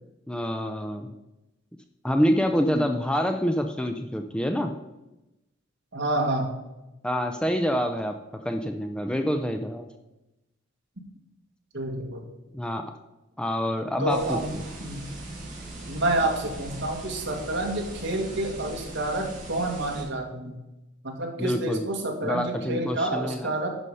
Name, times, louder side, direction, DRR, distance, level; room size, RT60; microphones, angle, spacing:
voice 1, 0.3-1.1 2.0-4.7 7.0-8.2 8.4-9.9 12.5-12.8 13.4-14.4 21.4-21.8 22.2-23.5, equal, 5° left, 6 dB, 0.4 m, -26 dB
voice 2, 5.9-6.5 11.7-12.2 14.0-15.1 15.9-20.6 21.0-23.7, right 1 dB, 60° right, 2 dB, 1.7 m, -28 dB
sound 1, 14.1-20.0, right 2 dB, 40° right, 2.7 m, -40 dB
11.0 x 4.9 x 5.4 m, 0.97 s
head